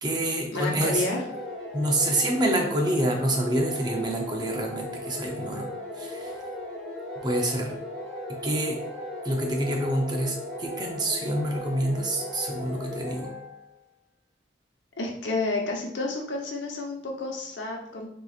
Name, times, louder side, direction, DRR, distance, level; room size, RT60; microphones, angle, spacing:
voice 1, 0.0-1.1 1.7-5.7 6.0-6.3 7.2-7.7 8.4-8.8 9.2-13.3, right 1 dB, 25° right, 1 dB, 0.7 m, -27 dB
voice 2, 0.5-1.2 15.0-18.1, left 2 dB, 85° left, 0 dB, 1.0 m, -30 dB
sound 1, 0.7-13.7, left 1 dB, 5° left, 1.3 m, -37 dB
6.8 x 3.1 x 2.5 m, 0.73 s
head